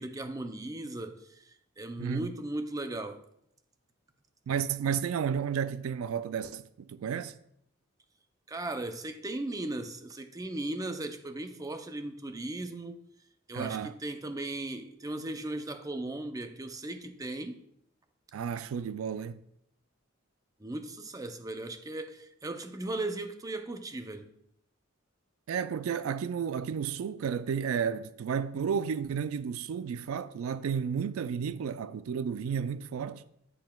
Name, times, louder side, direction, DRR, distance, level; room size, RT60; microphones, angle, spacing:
voice 1, 0.0-3.2 8.5-13.0 13.5-17.6 20.6-24.3, right 2 dB, 15° right, 0.5 m, -37 dB
voice 2, 2.0-2.3 4.5-7.4 13.5-13.9 18.3-19.4 25.5-33.2, right 7 dB, 85° right, 0.3 m, -32 dB
9.0 x 7.6 x 2.3 m
head